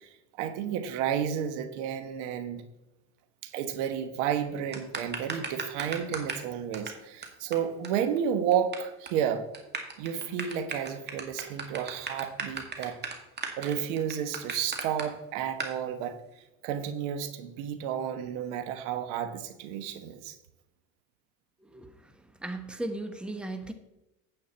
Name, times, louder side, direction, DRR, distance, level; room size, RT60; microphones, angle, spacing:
voice 1, 0.0-2.6 3.4-9.4 10.0-13.0 13.6-20.4, right 9 dB, 90° right, 9 dB, 1.3 m, -32 dB
sound 1, 4.7-6.5 6.7-6.9 7.2-7.3 7.5-7.6 7.8-7.9 8.2-8.8 9.1-9.2 9.5-15.0 15.6-15.7, right 5 dB, 30° right, 2.0 m, -35 dB
voice 2, 21.6-23.7, right 2 dB, 5° right, 7 dB, 1.1 m, -37 dB
9.2 x 8.8 x 4.3 m, 0.96 s
supercardioid pair, 110°, 34 cm